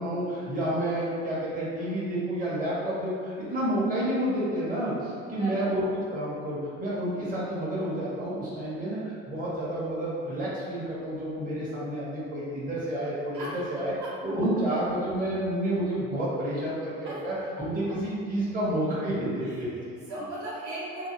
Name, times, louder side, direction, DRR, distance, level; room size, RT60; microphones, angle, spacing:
voice 1, 0.0-5.8 6.1-13.9 14.2-20.0, right 1 dB, 20° right, -8 dB, 0.9 m, -30 dB
voice 2, 5.4-5.7 13.3-13.7 14.0-14.1 17.0-17.2 17.6-17.9 19.4-21.1, right 1 dB, 50° right, -8 dB, 1.0 m, -38 dB
2.7 x 2.0 x 2.9 m, 2.2 s
hypercardioid pair, 55°, 38 cm